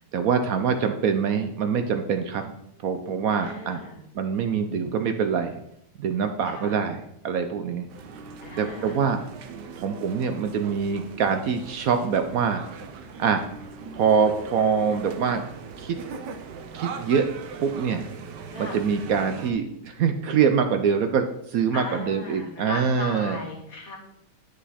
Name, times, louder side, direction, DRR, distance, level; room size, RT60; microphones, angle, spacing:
voice 1, 0.1-2.5 2.8-3.8 4.1-5.6 6.0-7.9 8.6-9.2 9.5-12.6 13.2-13.4 13.9-15.4 15.8-16.0 16.7-17.3 17.6-18.0 18.6-23.4, right 6 dB, 65° right, 7 dB, 0.9 m, -24 dB
voice 2, 3.3-4.0 6.4-6.8 8.4-9.0 18.5-18.8 21.7-24.0, left 3 dB, 55° left, 1 dB, 1.9 m, -37 dB
sound 1, 7.9-19.5, right 5 dB, 85° right, 1.4 m, -40 dB
10.0 x 4.9 x 4.2 m, 0.77 s
omnidirectional pair, 1.8 m